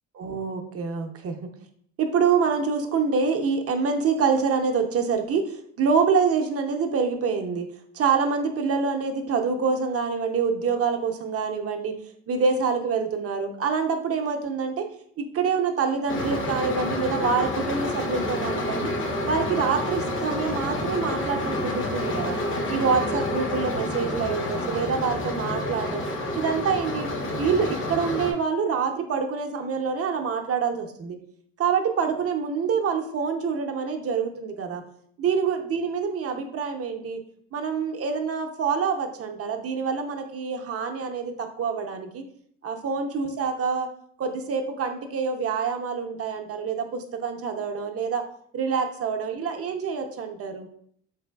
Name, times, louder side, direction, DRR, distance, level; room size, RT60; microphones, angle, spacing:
voice 1, 0.1-1.5 2.0-7.7 7.9-12.0 12.3-14.9 15.2-18.9 19.3-22.4 22.7-26.0 26.3-31.2 31.6-34.8 35.2-37.2 37.5-42.2 42.6-43.9 44.2-48.2 48.5-50.7, right 5 dB, 50° right, 5 dB, 0.6 m, -26 dB
sound 1, 16.1-28.3, left 1 dB, 40° left, 0.7 m, -29 dB
3.7 x 3.3 x 2.2 m, 0.64 s
cardioid pair, 90°, 30 cm